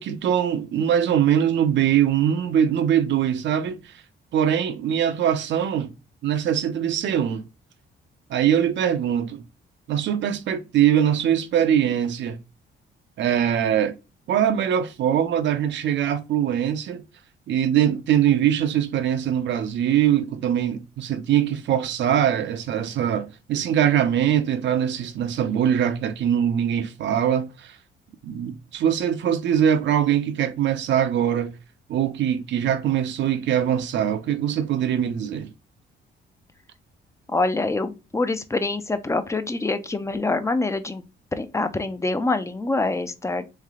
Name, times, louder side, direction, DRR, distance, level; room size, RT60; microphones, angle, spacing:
voice 1, 0.0-3.9 4.3-5.9 6.2-7.4 8.3-9.4 9.9-12.4 13.2-14.0 14.3-17.0 17.5-27.8 28.2-31.6 31.9-35.5, right 9 dB, 65° right, 0.5 m, -22 dB
voice 2, 37.3-41.0 41.3-43.5, left 2 dB, 15° left, 0.5 m, -25 dB
3.2 x 3.2 x 3.7 m
cardioid pair, 90°, 20 cm